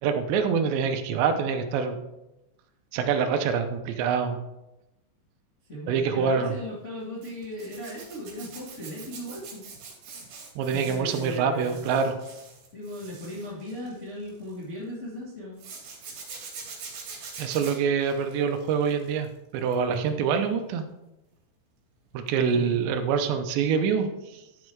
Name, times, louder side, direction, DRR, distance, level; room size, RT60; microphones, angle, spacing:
voice 1, 0.0-2.0 2.9-4.4 5.9-6.5 10.6-12.1 17.4-20.9 22.1-24.4, right 6 dB, 80° right, 7 dB, 2.8 m, -25 dB
voice 2, 5.7-9.6 10.7-11.9 12.7-15.6 22.5-22.8, equal, 70° left, -7 dB, 0.6 m, -37 dB
Zipper (clothing), 7.2-14.6 15.6-19.3 19.6-20.0 22.3-22.4 22.7-22.8, right 5 dB, 55° right, 4.0 m, -44 dB
11.5 x 5.3 x 4.6 m, 0.93 s
omnidirectional pair, 5.4 m